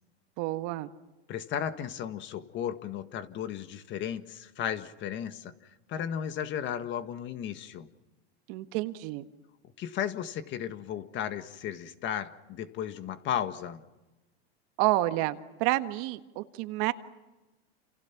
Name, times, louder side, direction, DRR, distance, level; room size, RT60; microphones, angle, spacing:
voice 1, 0.4-0.9 8.5-9.3 14.8-16.9, right 17 dB, 50° right, 9 dB, 1.7 m, -29 dB
voice 2, 1.3-7.9 9.8-13.8, left 9 dB, 35° left, 10 dB, 1.7 m, -35 dB
29.0 x 29.0 x 6.0 m, 1.1 s
supercardioid pair, 125°, 31 cm